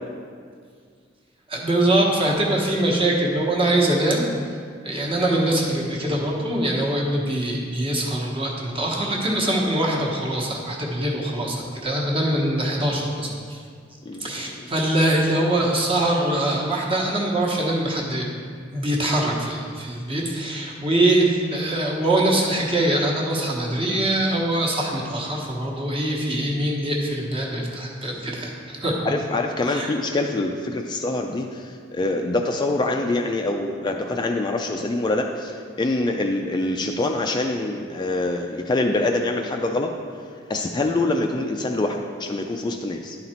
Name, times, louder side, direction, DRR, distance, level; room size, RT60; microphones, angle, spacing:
voice 1, 1.5-4.3 4.8-13.6 14.2-18.3 18.7-29.0 29.7-29.9, right 1 dB, 30° right, -2 dB, 1.1 m, -23 dB
voice 2, 14.1-14.7 29.1-39.9 40.5-43.2, left 2 dB, 25° left, 3 dB, 0.3 m, -25 dB
11.0 x 4.1 x 4.3 m, 2.1 s
head